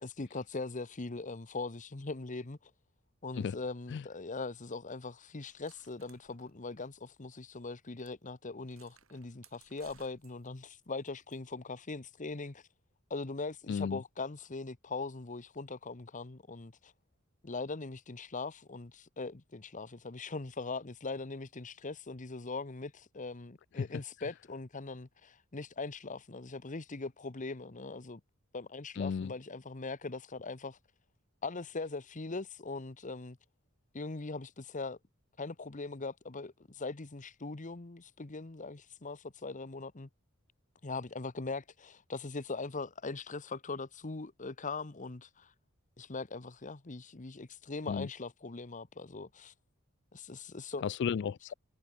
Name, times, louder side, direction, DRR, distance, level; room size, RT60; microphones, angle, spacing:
voice 1, 0.0-2.7 3.2-12.7 13.1-16.9 17.4-28.2 28.5-30.8 31.4-33.4 33.9-35.0 35.4-40.1 40.8-45.5 46.0-49.5 50.1-50.8, left 3 dB, 35° left, 1.0 m, -41 dB
sound 1, 5.5-7.3 7.6-7.7 8.0-8.2 8.6-11.4, right 9 dB, 70° right, 4.2 m, -64 dB
voice 2, 13.7-14.0 29.0-29.3 47.9-48.1 50.8-51.5, left 6 dB, 55° left, 0.3 m, -33 dB
head